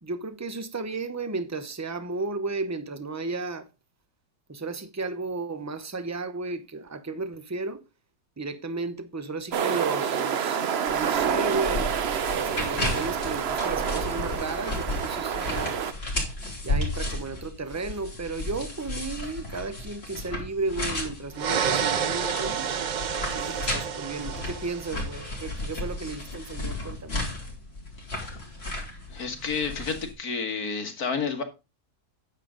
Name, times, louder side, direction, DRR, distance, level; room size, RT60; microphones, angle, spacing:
voice 1, 0.0-3.7 4.5-7.8 8.4-11.9 12.4-15.8 16.6-22.7 23.3-27.2, right 3 dB, 20° right, 0.5 m, -34 dB
sound 1, 9.5-15.9, right 7 dB, 50° right, 0.9 m, -28 dB
sound 2, 10.9-30.1, left 2 dB, 40° left, 3.4 m, -34 dB
sound 3, 21.4-25.3, right 7 dB, 85° right, 0.4 m, -29 dB
voice 2, 29.1-31.4, left 5 dB, 70° left, 2.3 m, -30 dB
9.8 x 7.6 x 3.8 m
omnidirectional pair, 1.7 m